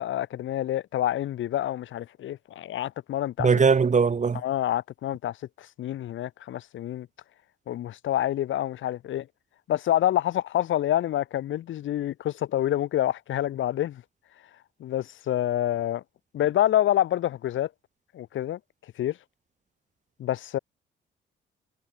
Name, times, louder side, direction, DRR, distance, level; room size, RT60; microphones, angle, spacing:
voice 1, 0.0-3.5 4.4-7.1 7.7-9.3 9.7-14.0 14.8-16.0 16.3-17.7 18.1-18.6 19.0-19.2 20.2-20.6, left 12 dB, 75° left, 5.2 m, -27 dB
voice 2, 3.4-4.4, right 5 dB, 35° right, 5.2 m, -20 dB
cardioid pair, 90°, 20 cm